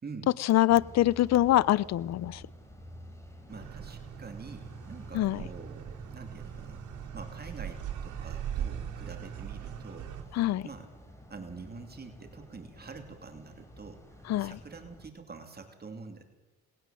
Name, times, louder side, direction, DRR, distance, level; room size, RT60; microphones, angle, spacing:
voice 1, 0.4-2.4 5.1-5.4 10.3-10.7 14.3-14.6, left 14 dB, 60° left, 22 dB, 0.6 m, -24 dB
sound 1, 0.7-15.1, equal, 10° left, 4.3 m, -51 dB
voice 2, 3.5-6.8 7.1-10.1 10.6-10.9 11.3-14.0 14.4-16.2, right 4 dB, 30° right, 5 dB, 3.0 m, -46 dB
sound 2, 3.5-10.2, right 9 dB, 75° right, 3.4 m, -40 dB
19.5 x 17.5 x 7.6 m, 1.1 s
cardioid pair, 90°, 30 cm